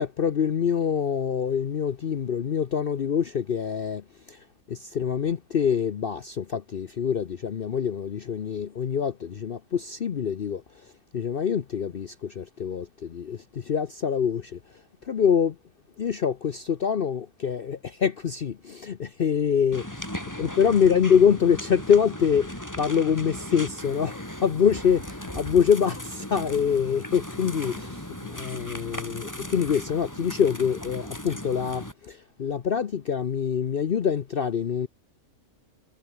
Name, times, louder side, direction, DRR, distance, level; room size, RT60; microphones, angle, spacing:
voice 1, 0.0-15.6 16.0-19.8 20.4-34.9, left 7 dB, 50° left, 0.8 m, -25 dB
sound 1, 19.7-31.9, left 1 dB, 10° left, 5.2 m, -37 dB
omnidirectional pair, 1.5 m